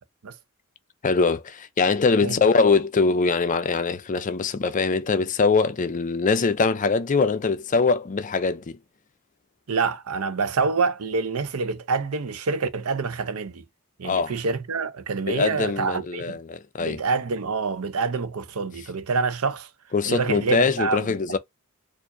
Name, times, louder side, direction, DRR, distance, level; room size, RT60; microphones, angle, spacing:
voice 1, 1.0-8.8 14.0-14.3 15.3-17.0 19.9-21.4, left 4 dB, 35° left, 0.5 m, -22 dB
voice 2, 9.7-13.6 14.0-16.4 16.8-19.7 20.1-21.4, right 4 dB, 80° right, 0.6 m, -27 dB
4.5 x 2.5 x 2.6 m
head